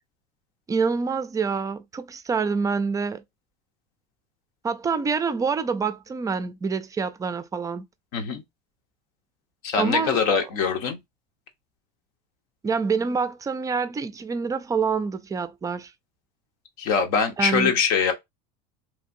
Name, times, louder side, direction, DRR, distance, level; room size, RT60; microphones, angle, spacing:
voice 1, 0.7-3.2 4.6-7.8 9.8-10.4 12.6-15.9 17.4-17.7, right 5 dB, 15° right, 0.4 m, -26 dB
voice 2, 8.1-8.4 9.6-11.0 16.8-18.1, left 6 dB, 75° left, 1.0 m, -23 dB
3.2 x 2.7 x 2.6 m
supercardioid pair, 120°, 20 cm